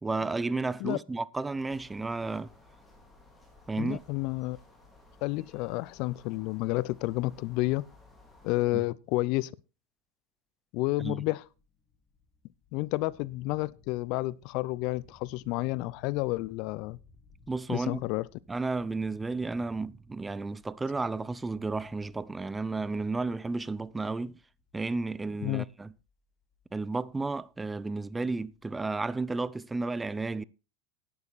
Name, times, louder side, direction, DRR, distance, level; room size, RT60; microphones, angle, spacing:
voice 1, 0.0-2.5 3.7-4.0 8.7-8.8 11.0-11.2 17.5-18.0 18.5-24.4 24.7-25.9 26.7-30.4, right 3 dB, 15° right, 0.5 m, -32 dB
sound 1, 1.6-8.6, left 2 dB, 5° left, 4.4 m, -57 dB
voice 2, 3.8-4.6 5.2-7.9 8.4-9.5 10.7-11.4 12.7-17.0 17.7-18.3 25.4-25.6, left 20 dB, 55° left, 0.5 m, -30 dB
sound 2, 11.4-29.1, left 4 dB, 25° left, 2.6 m, -63 dB
11.0 x 9.9 x 4.2 m
hypercardioid pair, 90°, 0 cm